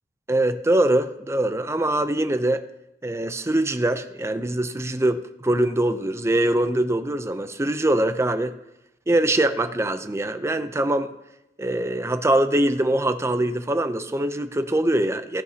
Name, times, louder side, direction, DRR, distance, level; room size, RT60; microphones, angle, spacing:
voice 1, 0.3-2.6 3.0-8.5 9.1-11.1 11.6-15.4, right 1 dB, 15° right, 9 dB, 0.5 m, -23 dB
15.5 x 10.5 x 2.8 m, 0.89 s
head